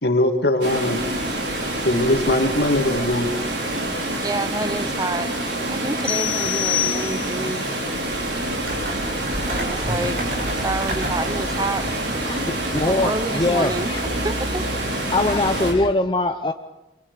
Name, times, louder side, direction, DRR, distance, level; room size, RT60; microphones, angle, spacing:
voice 1, 0.0-1.0 1.8-3.3, left 1 dB, 65° left, 4 dB, 2.4 m, -20 dB
Water, 0.6-15.7, right 1 dB, 80° right, 5.6 m, -27 dB
voice 2, 4.2-5.3 5.6-7.7 9.5-10.2 10.6-12.0 12.8-13.9 14.2-14.6, right 2 dB, 20° right, 12 dB, 0.7 m, -28 dB
sound 1, 6.0-7.6, left 15 dB, 45° left, 2.2 m, -26 dB
sound 2, 8.3-15.8, equal, 55° right, 6.2 m, -31 dB
voice 3, 12.2-14.0 15.1-16.5, left 2 dB, 25° left, 6 dB, 0.6 m, -22 dB
28.5 x 23.0 x 5.0 m, 1.0 s
head